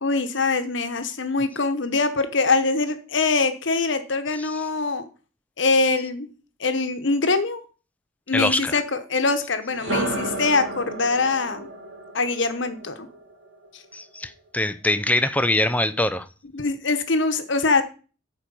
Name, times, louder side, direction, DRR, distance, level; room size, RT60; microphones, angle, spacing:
voice 1, 0.0-5.1 5.6-6.3 6.6-7.6 8.3-11.7 12.1-13.1 13.7-13.8 16.5-17.8, left 3 dB, 65° left, 1.1 m, -23 dB
voice 2, 8.3-8.7 13.9-16.3, left 1 dB, 10° left, 0.5 m, -23 dB
sound 1, 9.7-13.7, right 2 dB, 75° right, 2.6 m, -32 dB
8.8 x 4.5 x 6.9 m
head